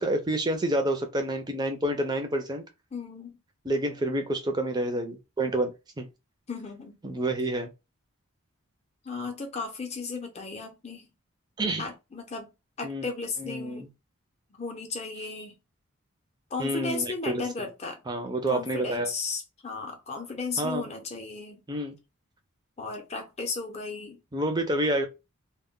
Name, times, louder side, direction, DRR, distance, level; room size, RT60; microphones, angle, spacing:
voice 1, 0.0-2.6 3.7-6.1 7.0-7.7 11.6-11.8 12.8-13.1 13.4-13.9 16.6-17.4 18.1-19.1 20.6-20.8 21.7-22.0 24.3-25.1, right 1 dB, 20° right, 0.4 m, -28 dB
voice 2, 2.9-3.4 6.5-7.0 9.0-11.1 11.8-12.5 12.8-13.9 14.5-15.6 16.5-18.0 18.5-21.6 22.8-24.2, left 4 dB, 30° left, 0.6 m, -35 dB
2.1 x 2.1 x 3.6 m
head